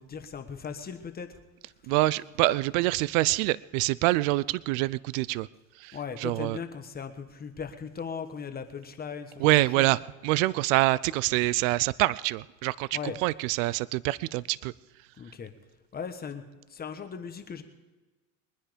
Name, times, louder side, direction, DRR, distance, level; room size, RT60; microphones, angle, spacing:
voice 1, 0.0-1.4 5.9-9.9 12.9-13.2 15.2-15.5 15.9-17.6, left 6 dB, 20° left, 7 dB, 1.2 m, -38 dB
voice 2, 1.9-5.5 5.8-6.6 9.4-14.7, right 19 dB, 70° right, 21 dB, 0.6 m, -26 dB
22.5 x 10.0 x 5.1 m, 1.2 s
supercardioid pair, 130°, 41 cm